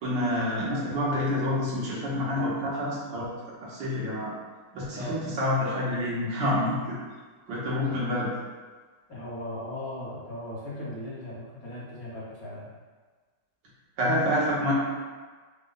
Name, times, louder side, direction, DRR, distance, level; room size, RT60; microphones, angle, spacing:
voice 1, 0.0-4.3 4.7-7.0 7.5-8.3 14.0-14.7, left 1 dB, 85° right, -7 dB, 1.9 m, -28 dB
voice 2, 9.1-12.7, left 1 dB, 55° left, -7 dB, 1.4 m, -38 dB
5.2 x 2.1 x 3.9 m, 1.4 s
omnidirectional pair, 1.9 m